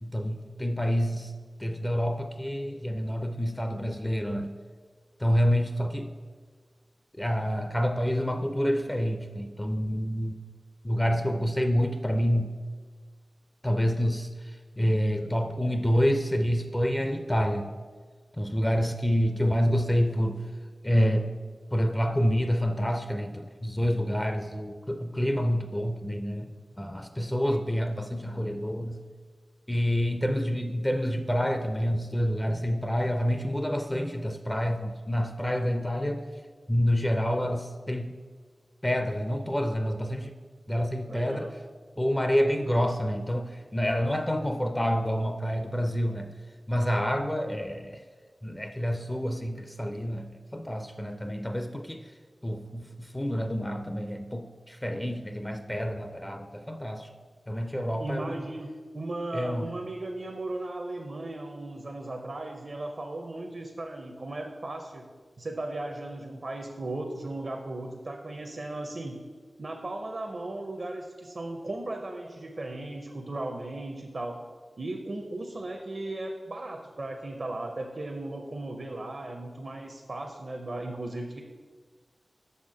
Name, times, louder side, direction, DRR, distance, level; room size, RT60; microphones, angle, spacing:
voice 1, 0.0-1.3 1.6-4.5 5.2-6.1 7.2-10.4 10.8-12.5 13.6-17.7 18.4-20.4 20.8-21.3 21.7-26.5 26.8-29.0 29.7-36.2 36.7-38.1 38.8-40.4 40.7-41.6 42.0-46.3 46.7-48.0 48.4-52.1 52.4-57.1 57.5-58.4 59.3-59.7, equal, 15° left, 7 dB, 0.4 m, -28 dB
voice 2, 41.1-41.5 58.0-65.1 65.4-69.2 69.6-74.4 74.8-81.4, right 2 dB, 60° right, 3 dB, 0.5 m, -36 dB
5.7 x 4.3 x 4.8 m, 1.6 s
wide cardioid pair, 55°, 0 cm